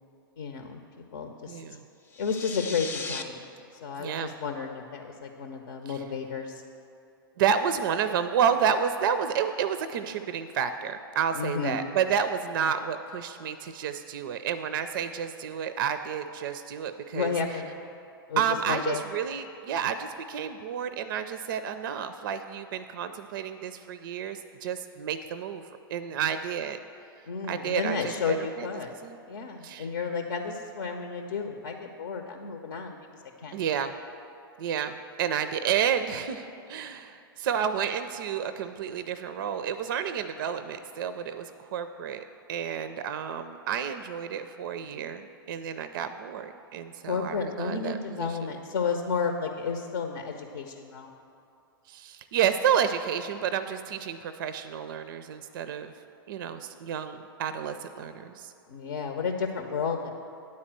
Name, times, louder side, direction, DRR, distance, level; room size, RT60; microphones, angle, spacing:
voice 1, 0.4-0.8 1.1-1.6 2.2-3.4 3.8-6.6 11.4-11.8 17.1-17.7 18.3-19.0 27.3-28.9 29.3-33.0 33.4-33.5 47.1-51.1 58.7-60.1, left 5 dB, 70° left, 4 dB, 0.7 m, -32 dB
voice 2, 1.5-1.8 4.0-4.3 5.9-6.0 7.4-17.3 18.4-26.8 27.5-28.7 29.0-29.2 29.6-29.9 33.5-33.9 34.6-42.2 42.5-48.6 51.9-55.9 56.3-58.5, right 8 dB, 60° right, 10 dB, 0.4 m, -30 dB
sound 1, 2.1-3.2, left 4 dB, 15° left, 0.6 m, -36 dB
9.6 x 4.3 x 7.4 m, 2.6 s
figure-of-eight pair, 100°, 12 cm